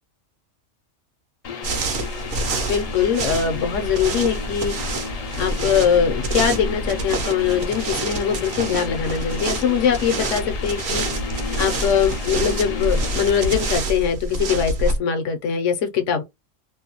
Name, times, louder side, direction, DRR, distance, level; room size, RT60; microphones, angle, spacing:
sound 1, 1.4-13.8, left 5 dB, 55° left, 0.4 m, -33 dB
sound 2, 1.6-15.0, right 2 dB, 60° right, 0.9 m, -27 dB
voice 1, 2.7-4.7 5.4-11.0 11.6-16.2, left 7 dB, 70° left, 1.0 m, -22 dB
2.7 x 2.2 x 2.8 m
omnidirectional pair, 1.3 m